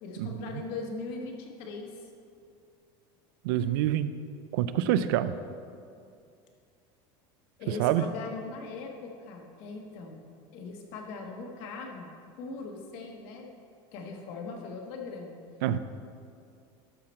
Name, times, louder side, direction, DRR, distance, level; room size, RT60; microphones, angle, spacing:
voice 1, 0.0-2.1 7.6-10.2 10.5-12.1 12.4-13.5 13.9-15.4, left 3 dB, 50° left, 2 dB, 1.2 m, -40 dB
voice 2, 3.4-4.1 4.5-5.4 7.8-8.0 15.6-15.8, right 12 dB, 70° right, 13 dB, 0.4 m, -26 dB
12.5 x 5.7 x 4.3 m, 2.4 s
cardioid pair, 180°, 12 cm